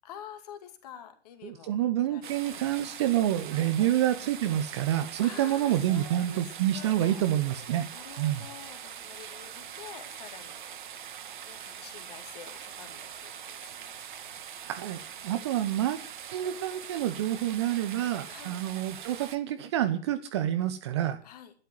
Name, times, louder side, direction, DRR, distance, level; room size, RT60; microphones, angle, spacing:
voice 1, 0.0-2.9 3.5-3.9 5.2-6.4 6.7-7.2 7.9-13.9 14.3-14.4 15.2-15.8 18.3-18.6 21.2-21.5, left 9 dB, 35° left, 8 dB, 2.3 m, -48 dB
voice 2, 1.4-7.9 8.2-8.4 14.6-16.0 16.3-21.2, right 12 dB, 25° right, 10 dB, 0.8 m, -28 dB
sound 1, 2.2-19.4, right 8 dB, 45° right, 1.5 m, -43 dB
12.0 x 10.5 x 7.7 m, 0.42 s
figure-of-eight pair, 130°, 34 cm